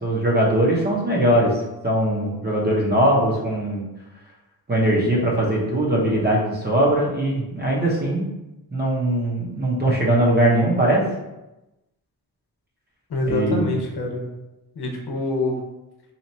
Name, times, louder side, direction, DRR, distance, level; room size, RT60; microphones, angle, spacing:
voice 1, 0.0-1.5 1.8-3.8 4.7-8.3 8.7-11.0 13.3-13.8, right 1 dB, 25° right, -4 dB, 0.8 m, -20 dB
voice 2, 13.1-14.3 14.8-15.6, left 2 dB, 80° left, 0 dB, 0.8 m, -25 dB
2.9 x 2.4 x 4.2 m, 0.98 s
wide cardioid pair, 150°, 38 cm